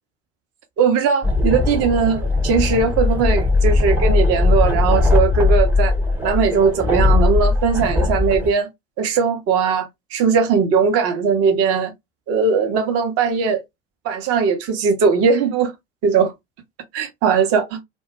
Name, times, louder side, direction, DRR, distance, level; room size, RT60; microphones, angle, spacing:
voice 1, 0.8-5.9 6.2-8.7 9.0-11.9 12.3-13.6 14.0-15.7 16.0-16.3 16.9-17.8, right 5 dB, 40° right, 0.8 m, -19 dB
sound 1, 1.2-8.5, left 3 dB, 5° right, 0.6 m, -18 dB
2.2 x 2.1 x 2.9 m
figure-of-eight pair, 70°, 35 cm